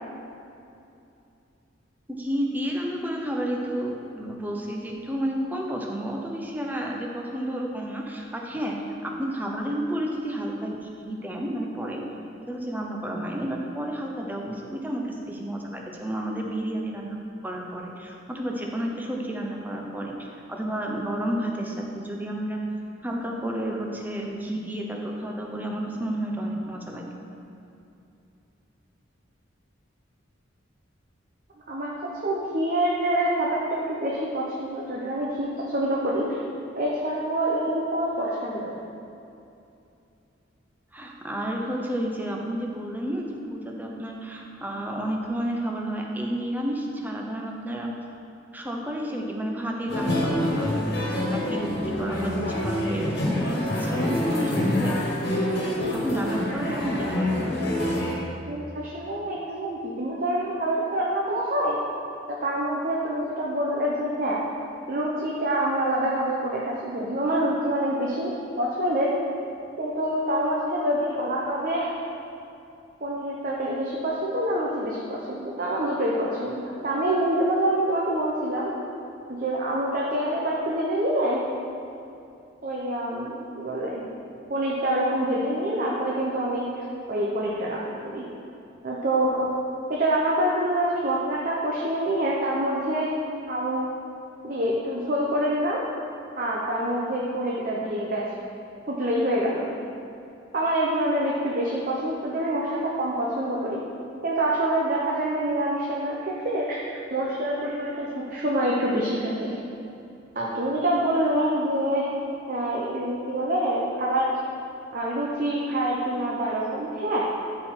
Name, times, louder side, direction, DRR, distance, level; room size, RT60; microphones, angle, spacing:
voice 1, 2.1-12.0 12.4-17.2 17.4-22.6 23.0-27.0 40.9-47.9 48.5-54.9 55.5-57.6, right 1 dB, 10° right, 0 dB, 0.7 m, -31 dB
voice 2, 31.7-36.4 36.8-38.7 58.5-61.8 62.4-64.4 64.9-68.3 68.6-69.1 69.8-72.0 73.0-78.7 79.3-81.4 82.6-84.0 84.5-88.3 88.8-89.5 89.9-93.1 93.5-93.9 94.4-95.8 96.4-98.3 98.9-99.7 100.5-103.8 104.2-109.6 110.3-112.1 112.5-114.4 114.9-117.2, right 1 dB, 45° right, -4 dB, 0.8 m, -26 dB
sound 1, 49.9-58.1, left 1 dB, 55° left, 1.6 m, -26 dB
12.5 x 4.5 x 3.8 m, 2.7 s
head